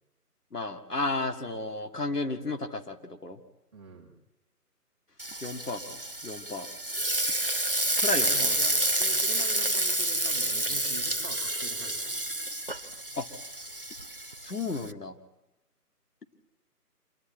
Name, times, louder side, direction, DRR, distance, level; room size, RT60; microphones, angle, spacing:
voice 1, 0.5-3.4 5.4-6.7 8.0-8.5 13.2-13.3 14.4-15.2, left 2 dB, 75° left, 5 dB, 2.3 m, -33 dB
voice 2, 3.7-4.2 8.2-12.2, right 4 dB, 20° right, 0 dB, 1.9 m, -44 dB
Frying (food), 5.2-14.9, right 1 dB, 35° right, 0.6 m, -29 dB
26.5 x 11.5 x 8.8 m, 1.0 s
figure-of-eight pair, 160°, 47 cm